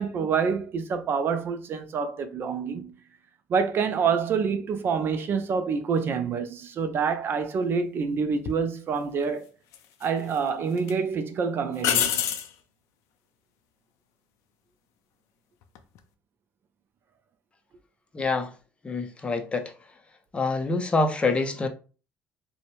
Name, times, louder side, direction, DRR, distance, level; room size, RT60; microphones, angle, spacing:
voice 1, 0.0-2.9 3.5-9.4 10.0-12.2, right 5 dB, 45° right, 0.4 m, -27 dB
sound 1, 8.4-8.6 9.7-10.4 10.8-10.9 11.8-12.5 15.6-16.0, left 9 dB, 75° left, 0.4 m, -26 dB
voice 2, 18.1-18.5 18.8-19.7 20.3-21.7, left 3 dB, 20° left, 0.5 m, -26 dB
2.6 x 2.0 x 2.9 m
supercardioid pair, 90°, 5 cm